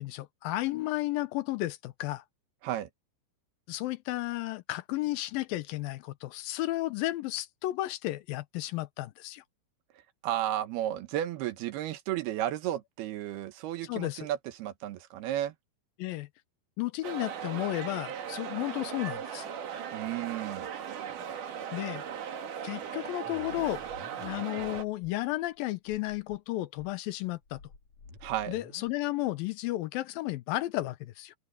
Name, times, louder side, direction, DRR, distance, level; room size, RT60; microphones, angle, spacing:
voice 1, 0.0-2.2 3.7-9.4 13.8-14.3 16.0-16.3 16.8-19.5 21.7-22.0 22.6-23.8 24.1-27.6 28.5-31.3, left 17 dB, 75° left, 2.3 m, -33 dB
voice 2, 10.2-15.5 19.9-20.7 28.2-28.5, right 12 dB, 75° right, 3.0 m, -33 dB
sound 1, 17.0-24.8, right 8 dB, 55° right, 3.1 m, -38 dB
sound 2, 23.3-25.1 25.5-25.6 25.9-26.4 26.8-28.9, left 3 dB, 40° left, 4.5 m, -51 dB
open air
omnidirectional pair, 4.7 m